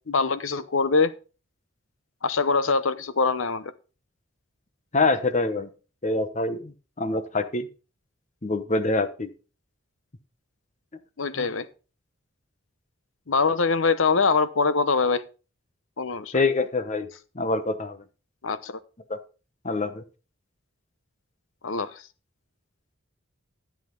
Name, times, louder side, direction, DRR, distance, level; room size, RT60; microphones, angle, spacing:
voice 1, 0.1-1.1 2.2-3.7 11.2-11.7 13.3-15.2 16.0-16.4 18.4-18.8 21.6-22.0, left 4 dB, 75° left, 14 dB, 0.9 m, -23 dB
voice 2, 4.9-5.7 6.0-6.7 7.0-7.7 8.4-9.3 11.4-11.5 16.3-17.1 17.3-18.0 19.1-19.2 19.6-20.0, left 3 dB, 35° left, 10 dB, 1.1 m, -25 dB
13.5 x 7.6 x 3.9 m, 0.35 s
head